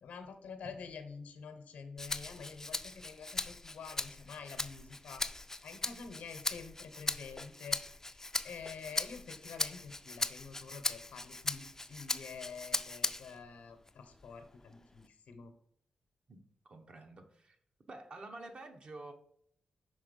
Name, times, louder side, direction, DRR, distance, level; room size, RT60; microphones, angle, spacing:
voice 1, 0.0-5.2 5.6-7.8 8.4-15.5, left 5 dB, 85° left, 0.8 m, -48 dB
Rattle (instrument), 2.0-13.4 13.9-15.1, left 2 dB, 20° left, 0.4 m, -39 dB
voice 2, 16.3-17.6 17.9-19.1, right 2 dB, 50° right, 0.9 m, -49 dB
5.8 x 3.5 x 5.2 m
cardioid pair, 60°, 2 cm